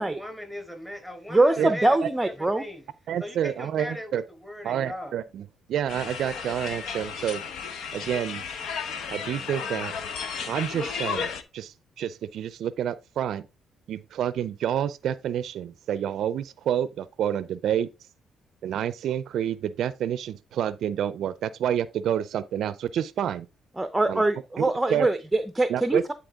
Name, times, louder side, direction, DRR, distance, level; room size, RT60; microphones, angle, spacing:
voice 1, 0.0-2.0 2.2-2.9 3.2-4.1 4.4-5.1, equal, 5° left, 4.4 m, -38 dB
voice 2, 1.3-2.6 23.8-26.1, right 2 dB, 10° right, 0.7 m, -23 dB
voice 3, 3.1-4.2 4.6-7.4 7.9-8.4 9.1-9.9 10.5-13.5 13.9-17.9 18.6-23.5 24.1-24.2 24.6-25.1 25.7-26.1, right 10 dB, 75° right, 0.4 m, -28 dB
sound 1, 5.9-11.4, left 6 dB, 75° left, 0.9 m, -33 dB
10.5 x 4.2 x 3.6 m
cardioid pair, 90°, 0 cm